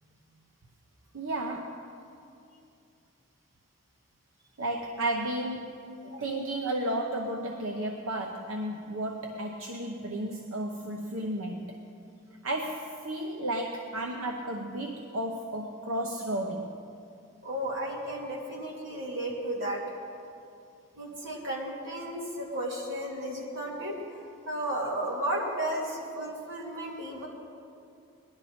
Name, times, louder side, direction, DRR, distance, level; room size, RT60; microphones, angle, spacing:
voice 1, 1.1-1.9 4.6-11.8 12.4-16.7, right 1 dB, 75° right, 2 dB, 0.9 m, -33 dB
voice 2, 17.4-19.8 21.0-23.9 24.5-27.3, right 1 dB, 55° right, -4 dB, 2.7 m, -33 dB
19.5 x 11.5 x 4.3 m, 2.5 s
head